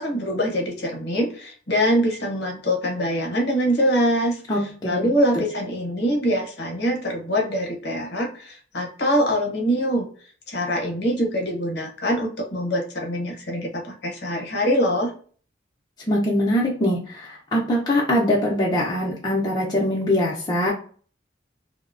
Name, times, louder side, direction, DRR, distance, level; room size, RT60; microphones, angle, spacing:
voice 1, 0.0-10.0 10.5-15.1, equal, 55° left, 0 dB, 0.8 m, -24 dB
voice 2, 4.5-5.1 16.1-20.7, left 1 dB, 20° left, -4 dB, 0.4 m, -22 dB
2.7 x 2.0 x 2.4 m, 0.43 s
head